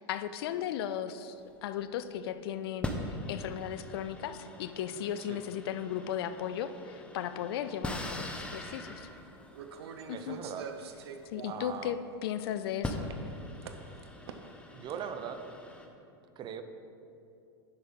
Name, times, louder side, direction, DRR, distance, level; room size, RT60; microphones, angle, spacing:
voice 1, 0.0-1.4 1.6-9.1 10.1-10.4 11.3-12.0 12.2-13.1, left 10 dB, 70° left, 11 dB, 0.5 m, -36 dB
sound 1, 1.4-2.1 2.8-12.0 12.4-12.5 12.8-15.9, left 1 dB, 10° left, 0.8 m, -42 dB
sound 2, 8.6-8.7 9.5-11.8 12.1-12.7 13.0-13.2 13.6-14.6 14.9-15.0, right 6 dB, 80° right, 0.7 m, -45 dB
voice 2, 10.1-10.7 11.5-11.9 14.7-15.4 16.4-16.6, right 8 dB, 35° right, 8 dB, 0.7 m, -40 dB
10.5 x 6.2 x 3.8 m, 2.6 s
hypercardioid pair, 105°, 13 cm